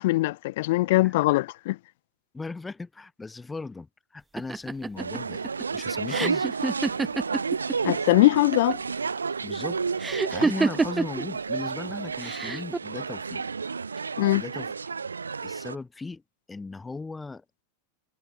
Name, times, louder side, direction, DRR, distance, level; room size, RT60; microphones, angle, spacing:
voice 1, 0.0-1.8 7.8-8.8 14.2-14.4, left 19 dB, 50° left, 2.0 m, -22 dB
voice 2, 2.3-3.9 4.1-6.5 9.4-9.8 10.3-13.4 14.3-14.7 15.4-16.2 16.5-17.6, left 3 dB, 10° left, 7.3 m, -37 dB
sound 1, 4.4-7.9 8.2-8.9 10.0-11.2 12.2-12.8, right 3 dB, 10° right, 1.8 m, -27 dB
sound 2, 5.0-15.7, right 5 dB, 75° right, 2.5 m, -31 dB
figure-of-eight pair, 90°, 0 cm